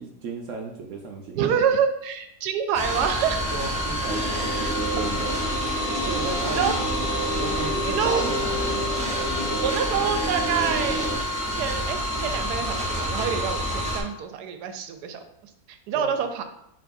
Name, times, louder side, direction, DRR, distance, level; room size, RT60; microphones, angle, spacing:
voice 1, 0.0-1.6 3.5-5.3 5.9-9.1 15.9-16.2, right 4 dB, 70° right, 2 dB, 0.8 m, -35 dB
voice 2, 1.4-3.4 6.4-6.7 7.8-8.2 9.6-11.3 11.6-15.2 15.7-16.4, right 7 dB, 85° right, 7 dB, 1.1 m, -26 dB
sound 1, 2.7-14.0, equal, 10° right, 0.3 m, -28 dB
sound 2, 4.1-11.1, equal, 35° left, 1.7 m, -30 dB
6.7 x 3.0 x 2.6 m, 0.78 s
omnidirectional pair, 1.7 m